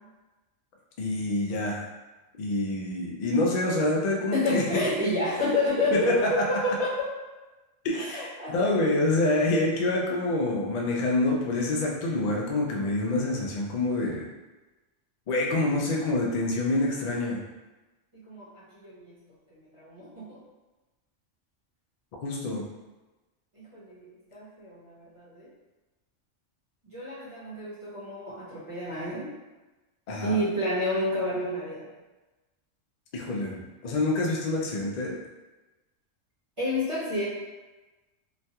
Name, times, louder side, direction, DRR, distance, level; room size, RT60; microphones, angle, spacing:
voice 1, 1.0-1.8 2.4-4.8 5.9-6.3 7.8-14.3 15.3-17.4 22.2-22.6 30.1-30.4 33.1-35.2, left 2 dB, 80° left, -2 dB, 0.3 m, -27 dB
voice 2, 4.3-7.1 7.9-8.8 18.1-19.2 19.5-20.4 23.5-25.5 26.8-29.3 30.2-31.9 36.6-37.3, left 1 dB, 30° right, -10 dB, 0.9 m, -30 dB
3.0 x 2.2 x 2.7 m, 1.1 s
omnidirectional pair, 1.3 m